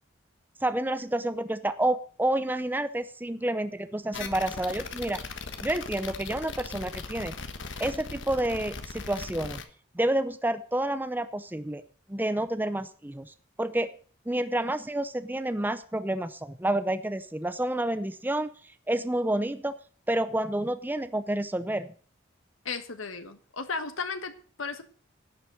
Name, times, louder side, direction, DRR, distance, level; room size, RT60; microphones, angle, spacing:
voice 1, 0.6-5.2 5.6-7.4 7.8-9.6 9.9-11.8 12.1-13.9 14.3-18.5 18.9-19.7 20.1-21.9, right 1 dB, 10° right, 11 dB, 0.6 m, -29 dB
sound 1, 4.1-9.6, left 4 dB, 65° left, 1.3 m, -39 dB
voice 2, 22.6-24.8, left 4 dB, 85° left, 8 dB, 1.5 m, -35 dB
11.0 x 7.3 x 7.3 m, 0.43 s
head